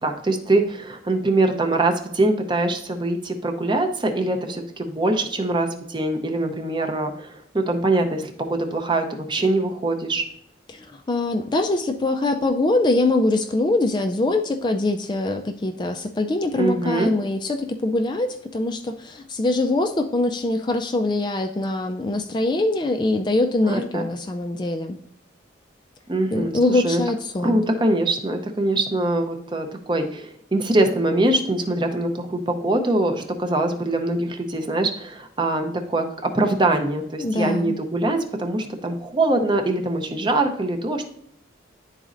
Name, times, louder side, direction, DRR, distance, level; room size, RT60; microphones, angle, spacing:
voice 1, 0.0-10.2 16.6-17.1 23.6-24.0 26.1-27.0 27.4-41.0, right 2 dB, 25° right, 4 dB, 0.6 m, -23 dB
voice 2, 10.7-25.0 26.3-27.6 37.2-37.8, left 2 dB, 25° left, 6 dB, 0.3 m, -23 dB
10.5 x 4.0 x 2.5 m, 0.71 s
head